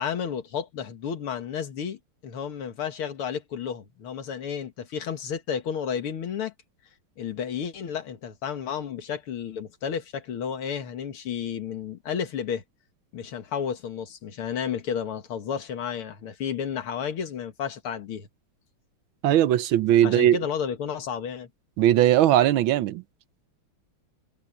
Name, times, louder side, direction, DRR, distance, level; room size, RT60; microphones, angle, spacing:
voice 1, 0.0-6.5 7.2-12.6 13.1-18.3 20.0-21.5, left 7 dB, 90° left, 2.5 m, -32 dB
voice 2, 19.2-20.4 21.8-23.0, right 12 dB, 75° right, 1.5 m, -19 dB
omnidirectional pair, 2.3 m